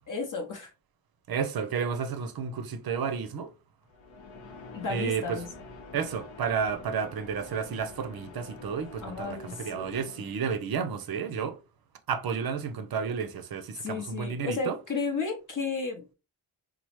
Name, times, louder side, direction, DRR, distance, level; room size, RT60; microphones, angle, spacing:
voice 1, 0.1-0.7 4.7-5.5 9.0-10.2 13.8-16.0, left 4 dB, 40° left, 0.8 m, -33 dB
voice 2, 1.3-3.5 4.9-5.4 5.9-11.6 12.1-14.8, right 6 dB, 50° right, 0.5 m, -31 dB
sound 1, 3.9-10.7, left 3 dB, 75° left, 0.7 m, -47 dB
3.1 x 2.0 x 2.9 m
cardioid pair, 75°, 48 cm